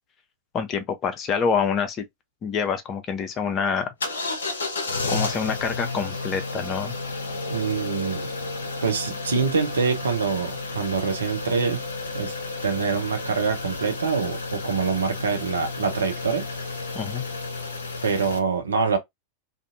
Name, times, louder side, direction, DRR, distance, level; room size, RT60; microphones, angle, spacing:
voice 1, 0.5-2.0 2.4-3.9 5.1-6.9 16.9-17.2, left 6 dB, 30° left, 0.6 m, -26 dB
sound 1, 4.0-18.4, left 3 dB, 70° left, 0.6 m, -32 dB
voice 2, 7.5-8.3 8.8-11.8 12.1-12.3 12.6-16.6 18.0-19.0, right 5 dB, 70° right, 0.7 m, -25 dB
2.6 x 2.5 x 2.5 m
figure-of-eight pair, 90°, 0 cm